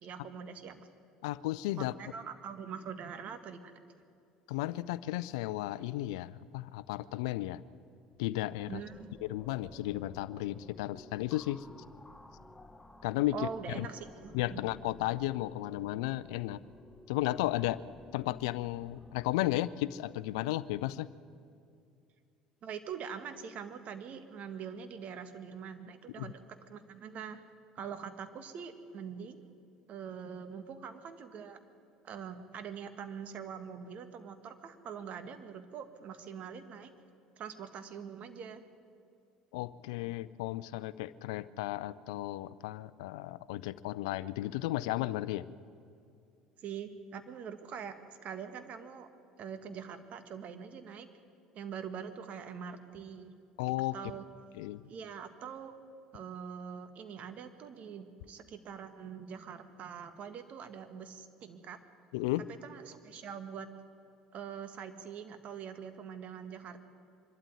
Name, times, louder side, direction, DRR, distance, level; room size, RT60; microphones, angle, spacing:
voice 1, 0.0-0.9 1.8-3.7 8.7-9.1 13.3-14.6 22.6-27.4 27.8-29.4 29.9-31.6 32.0-36.9 37.4-38.6 46.6-49.1 49.4-51.1 51.5-53.3 53.9-54.2 54.9-55.7 56.1-61.8 62.6-63.7 64.3-66.8, right 7 dB, 50° right, 9 dB, 1.8 m, -43 dB
voice 2, 1.2-1.9 4.5-7.6 8.2-8.8 9.2-11.7 13.0-13.5 13.7-13.9 14.3-16.6 17.1-17.8 18.1-21.1 26.2-26.3 39.5-45.5 53.6-53.9 54.5-54.9 62.1-62.5, left 16 dB, 75° left, 16 dB, 0.5 m, -34 dB
sound 1, 8.0-19.5, left 1 dB, 15° left, 1.1 m, -55 dB
24.0 x 12.5 x 9.6 m, 2.5 s
hypercardioid pair, 65°, 3 cm